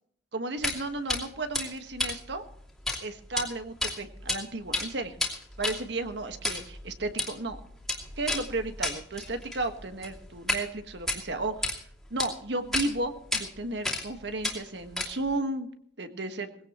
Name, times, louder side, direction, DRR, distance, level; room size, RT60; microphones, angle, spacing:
voice 1, 0.3-2.4 3.0-5.1 5.6-7.6 8.2-11.8 12.1-15.7 16.0-16.5, right 2 dB, 75° right, 8 dB, 1.5 m, -33 dB
sound 1, 0.6-0.8 1.1-1.2 1.5-3.0 3.3-3.4 3.8-4.4 4.6-10.6 11.0-11.8 12.2-12.3 12.7-12.9 13.3-13.4 13.8-14.1 14.4-15.4, left 2 dB, ahead, 2.7 m, -31 dB
20.0 x 16.5 x 3.0 m, 0.66 s
head